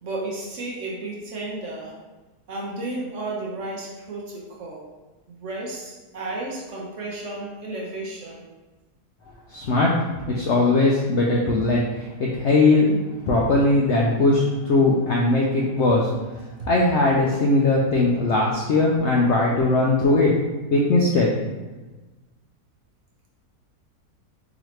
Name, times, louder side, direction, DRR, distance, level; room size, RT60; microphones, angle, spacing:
voice 1, 0.0-2.0 2.5-4.9 5.3-8.4 16.6-16.7, right 2 dB, 60° right, -3 dB, 0.9 m, -33 dB
voice 2, 9.5-9.9 10.3-16.1 16.7-20.4 20.7-21.3, left 2 dB, 75° left, -2 dB, 0.6 m, -19 dB
4.0 x 2.9 x 3.1 m, 1.2 s
omnidirectional pair, 1.7 m